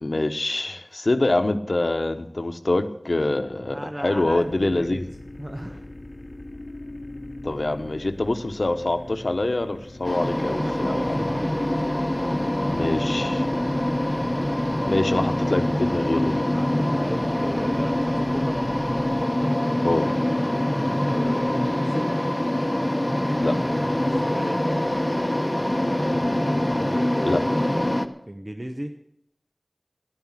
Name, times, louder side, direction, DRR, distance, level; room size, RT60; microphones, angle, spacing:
voice 1, 0.0-5.0 7.4-11.2 12.7-13.5 14.8-16.4 19.8-20.1 23.4-23.6 27.2-27.4, left 2 dB, 90° left, 8 dB, 1.0 m, -25 dB
voice 2, 3.7-5.1 5.4-5.9 10.5-11.7 15.5-15.7 16.5-18.6 20.8-22.1 23.8-24.6 26.7-27.2 28.3-29.0, right 1 dB, 30° right, 5 dB, 1.0 m, -36 dB
sound 1, 4.2-19.3, left 1 dB, 45° left, 1.0 m, -39 dB
sound 2, 10.0-28.1, left 1 dB, 25° left, 1.1 m, -24 dB
13.5 x 10.5 x 7.5 m, 0.72 s
wide cardioid pair, 45°, 0 cm